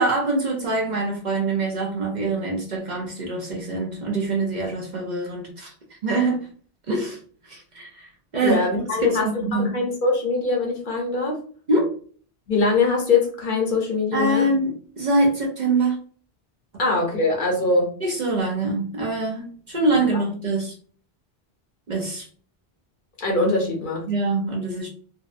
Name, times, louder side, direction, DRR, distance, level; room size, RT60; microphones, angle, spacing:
voice 1, 0.0-5.7 6.0-6.5 6.9-7.2 7.4-9.7 11.7-11.9 14.1-16.0 18.0-20.7 21.9-22.3 24.1-24.9, right 2 dB, 50° right, 0 dB, 0.6 m, -24 dB
voice 2, 8.4-11.4 12.5-14.5 16.8-17.9 23.2-24.1, left 3 dB, 55° left, -1 dB, 0.8 m, -22 dB
2.7 x 2.1 x 2.4 m, 0.44 s
omnidirectional pair, 1.1 m